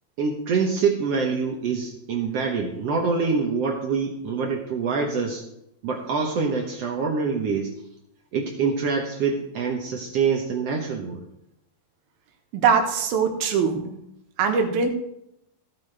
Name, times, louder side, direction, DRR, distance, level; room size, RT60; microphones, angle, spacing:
voice 1, 0.2-5.4 5.8-7.8 8.3-11.2, right 5 dB, 70° right, 1 dB, 1.5 m, -25 dB
voice 2, 12.5-14.0 14.4-14.9, right 5 dB, 90° right, 4 dB, 3.0 m, -22 dB
16.0 x 8.9 x 3.3 m, 0.79 s
omnidirectional pair, 4.2 m